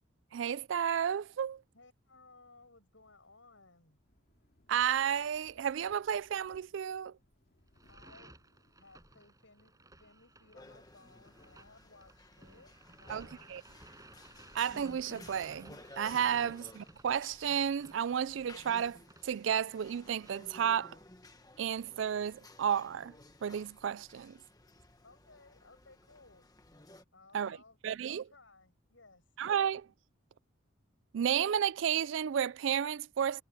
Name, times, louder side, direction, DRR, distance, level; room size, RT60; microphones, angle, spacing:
voice 1, 0.3-1.6 4.7-7.1 13.1-13.6 14.5-19.0 19.2-21.0 21.6-23.1 23.4-24.4 27.3-27.6 27.8-28.2 29.4-29.9 31.1-33.4, right 8 dB, 65° right, 0.4 m, -32 dB
voice 2, 1.7-4.0 7.9-8.4 8.8-9.7 10.0-12.7 13.0-13.5 16.4-16.5 25.0-26.5 27.1-27.8 28.1-29.2, left 3 dB, 70° left, 7.5 m, -60 dB
sound 1, 3.8-16.6, left 1 dB, 50° left, 2.7 m, -69 dB
sound 2, 7.7-20.3, right 2 dB, 20° right, 5.9 m, -58 dB
sound 3, 10.5-27.0, left 2 dB, 20° left, 1.5 m, -56 dB
head